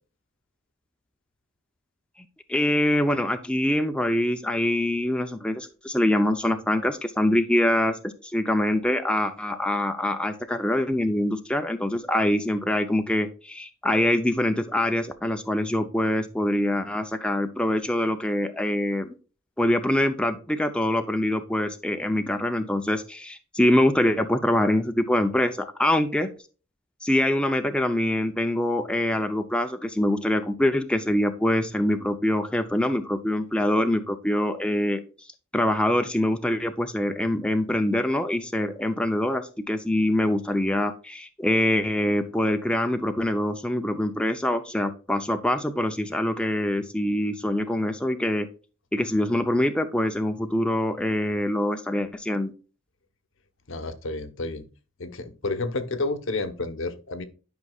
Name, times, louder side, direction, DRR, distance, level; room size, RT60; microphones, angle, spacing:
voice 1, 2.5-8.0 8.2-19.1 19.6-26.3 27.0-35.0 35.5-48.5 48.9-52.5, left 1 dB, 5° left, 5 dB, 0.6 m, -24 dB
voice 2, 53.7-54.6 55.0-57.2, left 2 dB, 70° left, 10 dB, 1.0 m, -30 dB
11.0 x 5.5 x 2.3 m, 0.36 s
head